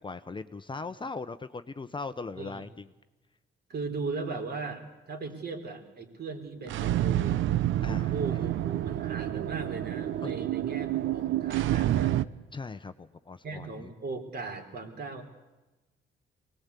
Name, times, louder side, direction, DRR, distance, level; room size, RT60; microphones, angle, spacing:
voice 1, 0.0-2.9 7.8-8.4 10.2-10.3 12.5-13.9, left 4 dB, 25° left, 10 dB, 0.9 m, -39 dB
voice 2, 2.4-2.7 3.7-7.5 8.1-12.2 13.4-15.2, right 3 dB, 55° right, 4 dB, 4.0 m, -38 dB
sound 1, 6.6-12.2, right 13 dB, 75° right, 0.7 m, -28 dB
23.5 x 19.0 x 8.4 m, 1.1 s
cardioid pair, 90°, 20 cm